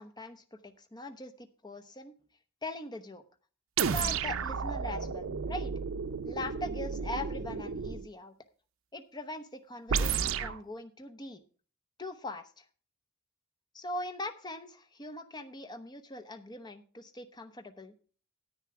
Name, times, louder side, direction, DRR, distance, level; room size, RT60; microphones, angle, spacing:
voice 1, 0.0-2.1 2.6-3.2 3.9-5.7 6.2-8.3 8.9-11.4 12.0-12.6 13.7-17.9, left 2 dB, 20° left, 7 dB, 0.9 m, -41 dB
sound 1, 3.8-8.1 9.9-10.6, right 6 dB, 75° right, 0.5 m, -32 dB
10.5 x 9.0 x 4.7 m, 0.39 s
head